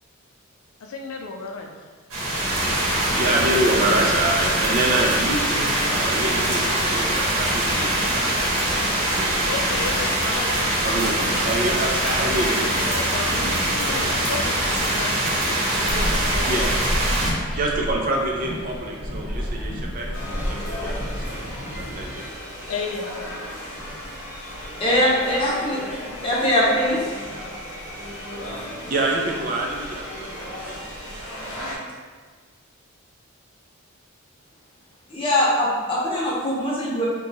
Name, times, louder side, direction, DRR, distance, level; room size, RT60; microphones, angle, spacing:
voice 1, 0.8-1.7 9.5-12.3 12.8-15.6 15.8-16.6 17.2-17.6 22.7-23.8, left 4 dB, 75° left, 2 dB, 0.4 m, -34 dB
sound 1, 2.1-17.3, right 1 dB, 65° right, 0.9 m, -23 dB
voice 2, 3.1-9.5 10.8-11.2 11.4-12.9 13.4-13.6 14.0-14.2 16.5-16.8 17.5-20.9 21.3-22.3 22.6-22.7 23.8-23.9 28.9-31.3, right 1 dB, 40° right, 0 dB, 0.3 m, -27 dB
sound 2, 15.9-22.1, equal, 20° right, 1.0 m, -29 dB
sound 3, 20.1-31.8, left 1 dB, 55° left, 0.8 m, -35 dB
voice 3, 24.8-26.0 26.2-27.0 35.1-37.0, left 1 dB, 25° left, -6 dB, 0.7 m, -21 dB
2.8 x 2.2 x 3.9 m, 1.5 s
head